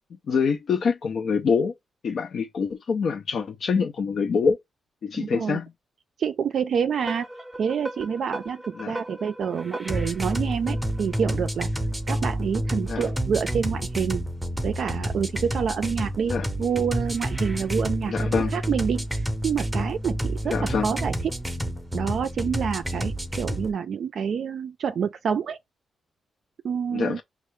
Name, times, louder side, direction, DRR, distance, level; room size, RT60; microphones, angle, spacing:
voice 1, 0.3-1.7 2.0-4.6 5.0-5.7 8.7-9.0 12.9-13.1 16.3-16.5 18.1-18.5 20.4-20.9 26.9-27.2, left 5 dB, 65° left, 0.5 m, -25 dB
voice 2, 5.1-5.6 6.2-7.3 7.6-11.7 12.1-14.2 14.6-16.3 16.6-21.1 21.9-25.6 26.6-27.2, right 7 dB, 65° right, 0.3 m, -27 dB
sound 1, 7.0-23.7, right 1 dB, 10° right, 0.7 m, -29 dB
5.3 x 2.4 x 3.1 m
cardioid pair, 95°, 0 cm